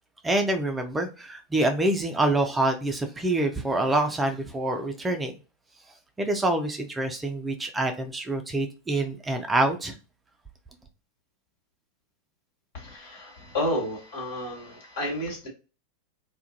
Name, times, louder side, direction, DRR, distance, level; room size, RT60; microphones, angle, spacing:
voice 1, 0.2-5.3 6.2-9.9, right 2 dB, 15° right, 0.4 m, -26 dB
voice 2, 12.7-15.5, left 1 dB, 60° left, 1.4 m, -31 dB
2.3 x 2.1 x 2.5 m
figure-of-eight pair, 85°, 0 cm